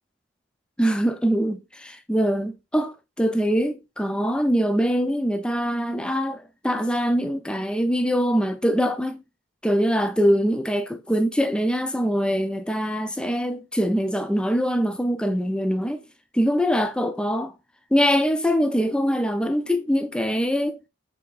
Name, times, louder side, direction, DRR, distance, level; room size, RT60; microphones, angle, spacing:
voice 1, 0.8-9.2 9.6-16.0 16.3-17.5 17.9-20.8, equal, 5° left, 0.4 m, -23 dB
4.9 x 3.4 x 2.3 m
head